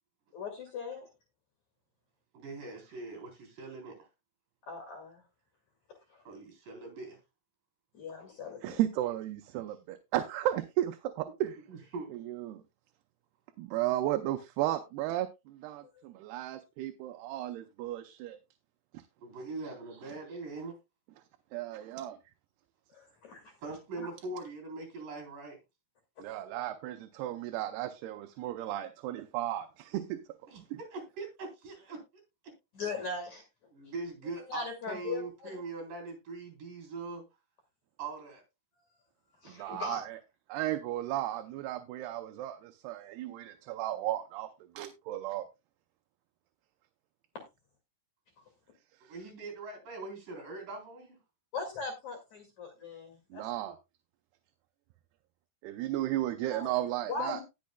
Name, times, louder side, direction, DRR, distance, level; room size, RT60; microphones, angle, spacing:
voice 1, 0.3-1.0 4.7-5.2 7.9-8.8 22.9-23.5 24.0-24.1 32.7-33.4 34.5-35.6 39.4-40.0 51.5-53.4 56.5-56.7 57.1-57.4, left 4 dB, 50° left, 3.1 m, -39 dB
voice 2, 2.3-4.1 6.3-7.2 11.7-12.2 19.2-20.7 23.6-25.6 30.5-30.6 30.9-32.0 33.7-37.2 38.0-38.4 49.1-51.2, right 3 dB, 55° right, 5.4 m, -42 dB
voice 3, 8.6-11.6 12.1-12.6 13.6-18.4 20.0-20.1 21.5-22.2 26.2-30.2 30.7-30.8 39.5-40.2 40.5-44.5 44.8-45.5 53.3-53.8 55.6-57.4, right 13 dB, 85° right, 2.7 m, -34 dB
19.0 x 6.4 x 2.2 m
omnidirectional pair, 4.6 m